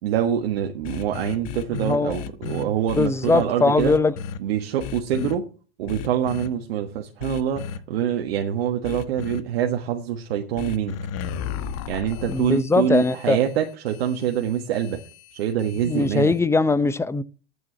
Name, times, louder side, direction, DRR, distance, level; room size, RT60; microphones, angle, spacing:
voice 1, 0.0-4.0 4.4-5.5 5.8-11.0 11.9-15.0 15.3-16.3, right 9 dB, 75° right, 1.5 m, -25 dB
sound 1, 0.8-3.4 3.8-4.4 4.8-5.3 5.9-6.5 7.2-7.8 8.8-9.4 10.6-16.4, left 8 dB, 55° left, 1.3 m, -35 dB
voice 2, 1.7-2.1 2.4-4.1 5.2-5.3 12.3-13.4 15.8-17.2, left 3 dB, 10° left, 0.6 m, -21 dB
8.8 x 7.2 x 7.2 m
hypercardioid pair, 105°, 30 cm